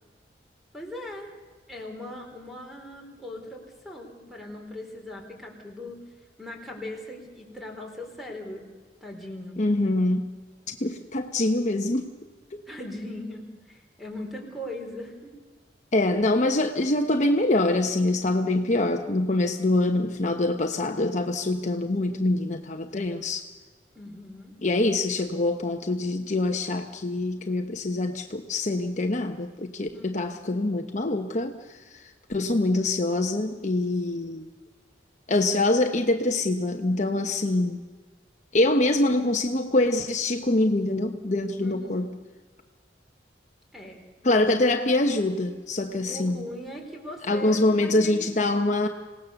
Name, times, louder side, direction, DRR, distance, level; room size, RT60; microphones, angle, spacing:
voice 1, 0.7-1.3 1.7-6.0 6.4-8.7 9.0-9.6 12.7-15.3 23.9-24.5 29.9-30.4 41.6-42.1 43.7-44.0 46.1-48.3, left 1 dB, ahead, 1 dB, 3.9 m, -39 dB
voice 2, 9.6-10.3 10.7-12.1 12.5-12.6 15.9-23.4 24.6-34.5 35.3-37.8 38.5-42.1 44.2-46.5 47.3-48.9, left 2 dB, 40° left, 5 dB, 1.0 m, -25 dB
26.5 x 18.0 x 7.0 m, 1.4 s
head